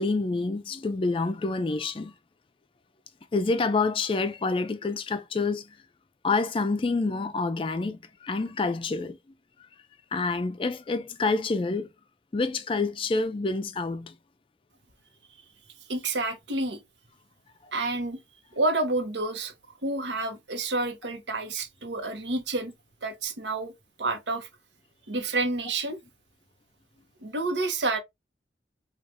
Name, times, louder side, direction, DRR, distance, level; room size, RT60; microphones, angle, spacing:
voice 1, 0.0-2.1 3.3-5.7 6.2-9.2 10.1-11.9 12.3-14.1, left 3 dB, 30° left, 0.3 m, -27 dB
voice 2, 15.9-16.8 17.7-18.2 18.5-19.5 19.8-22.7 23.0-23.7 24.0-24.5 25.1-26.0 27.2-28.0, right 2 dB, 85° right, 0.9 m, -29 dB
4.6 x 2.4 x 2.6 m
head